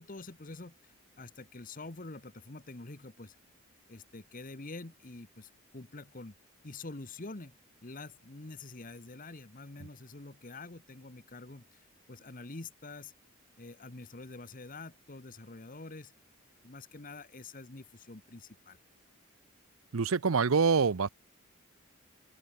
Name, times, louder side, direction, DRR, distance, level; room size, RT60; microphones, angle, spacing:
voice 1, 0.0-3.4 3.9-6.3 6.6-13.1 13.6-16.1 16.6-18.8, left 3 dB, 40° left, 1.3 m, -46 dB
voice 2, 19.9-21.1, right 5 dB, 80° right, 0.7 m, -25 dB
open air
head